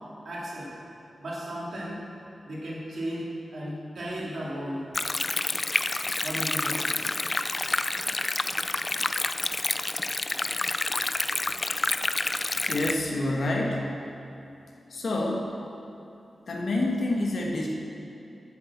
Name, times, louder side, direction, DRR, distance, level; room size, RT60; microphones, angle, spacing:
voice 1, 0.2-0.7 1.2-2.0 2.4-3.3 3.5-4.9 6.2-7.1, equal, 65° right, -6 dB, 2.7 m, -35 dB
Stream, 4.9-12.9, left 2 dB, 25° left, 0.3 m, -28 dB
voice 2, 12.7-13.9 14.9-15.5 16.5-17.7, left 1 dB, 65° left, -1 dB, 1.3 m, -27 dB
8.0 x 7.6 x 7.2 m, 2.9 s
wide cardioid pair, 125°, 0 cm